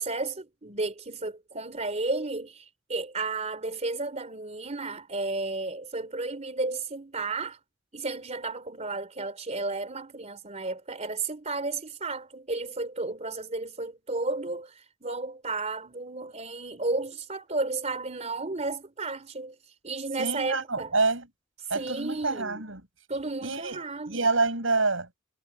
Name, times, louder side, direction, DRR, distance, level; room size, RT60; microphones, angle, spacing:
voice 1, 0.0-7.6 7.9-19.6 19.8-20.9 21.8-22.6 23.1-24.3, right 3 dB, 35° right, 3.6 m, -33 dB
voice 2, 20.2-21.3 21.7-22.8 23.4-25.1, right 3 dB, 85° right, 7.7 m, -27 dB
head